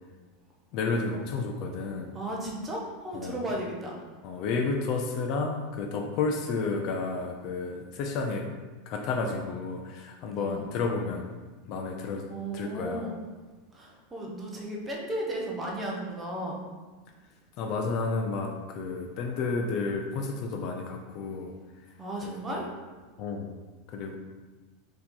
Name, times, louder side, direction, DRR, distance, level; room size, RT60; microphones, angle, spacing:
voice 1, 0.7-2.1 3.1-3.6 4.2-8.5 8.9-11.3 11.7-12.3 12.5-13.1 17.6-21.5 22.2-22.7 23.2-23.6 23.9-24.2, left 4 dB, 35° left, 3 dB, 0.3 m, -31 dB
voice 2, 2.1-4.0 10.4-10.7 12.3-13.2 13.7-16.6 22.0-22.7, right 1 dB, 10° right, -2 dB, 0.6 m, -35 dB
4.5 x 2.8 x 3.8 m, 1.3 s
supercardioid pair, 180°, 0 cm